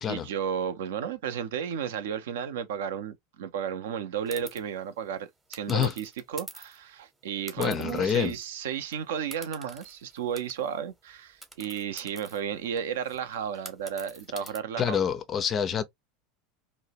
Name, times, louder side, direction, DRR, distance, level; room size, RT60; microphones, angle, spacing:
voice 1, 0.1-15.0, right 8 dB, 60° right, 0.4 m, -33 dB
sound 1, 4.3-4.6 5.5-6.8 7.5-8.5 8.8-8.9 9.3-10.8 11.4-14.6, right 2 dB, 10° right, 0.7 m, -46 dB
voice 2, 7.6-8.3 14.8-15.8, left 8 dB, 30° left, 0.4 m, -27 dB
2.6 x 2.0 x 2.8 m
figure-of-eight pair, 75°, 0 cm